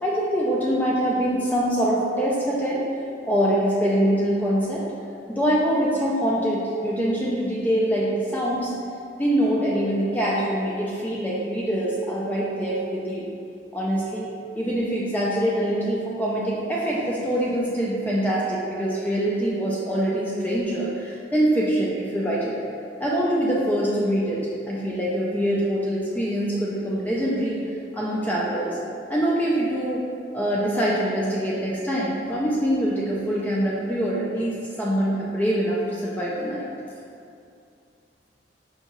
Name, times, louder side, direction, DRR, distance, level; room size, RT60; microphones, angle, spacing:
voice 1, 0.0-2.8 3.2-4.9 5.3-8.7 9.2-13.3 13.7-14.3 14.5-22.6 23.0-27.6 27.9-28.8 29.1-30.0 30.3-36.7, equal, 10° left, -6 dB, 0.3 m, -24 dB
4.6 x 2.7 x 3.0 m, 2.5 s
head